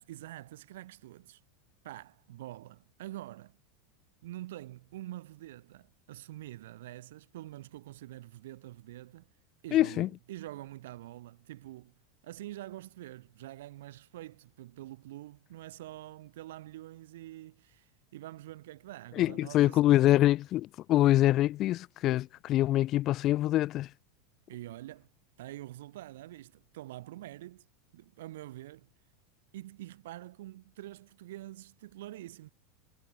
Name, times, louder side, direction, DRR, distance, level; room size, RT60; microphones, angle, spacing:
voice 1, 0.0-1.4 1.8-3.6 4.2-9.3 9.6-11.9 12.2-19.8 24.5-25.1 25.4-27.7 27.9-28.9 29.5-32.5, right 15 dB, 75° right, 7.6 m, -46 dB
voice 2, 9.7-10.1 19.2-23.9, left 14 dB, 30° left, 1.7 m, -25 dB
supercardioid pair, 170°, 0 cm